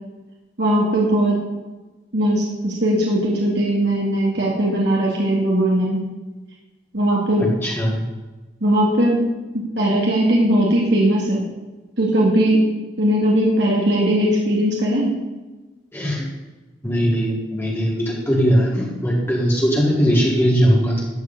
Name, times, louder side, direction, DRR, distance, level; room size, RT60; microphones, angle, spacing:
voice 1, 0.6-1.4 2.1-6.1 6.9-7.4 8.6-9.2 9.8-11.4 12.0-12.6 13.0-15.1, right 1 dB, 70° right, -3 dB, 2.2 m, -19 dB
voice 2, 7.4-8.0 15.9-16.3 16.8-21.1, equal, 15° left, -4 dB, 1.7 m, -19 dB
13.5 x 4.8 x 8.6 m, 1.2 s
head